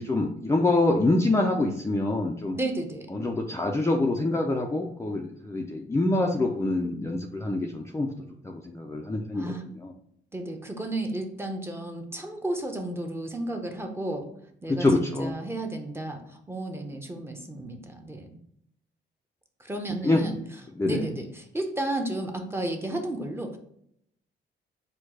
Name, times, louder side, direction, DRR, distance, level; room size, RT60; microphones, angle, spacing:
voice 1, 0.0-2.6 3.1-8.1 8.4-9.9 14.7-15.4 20.0-20.2 20.8-21.1, left 2 dB, 15° left, 0 dB, 0.5 m, -26 dB
voice 2, 2.5-3.1 9.3-9.7 10.3-14.3 14.6-16.2 16.5-18.4 19.6-20.4 20.8-23.6, right 1 dB, 10° right, 3 dB, 0.8 m, -33 dB
4.4 x 2.3 x 4.6 m, 0.70 s
cardioid pair, 90°, 20 cm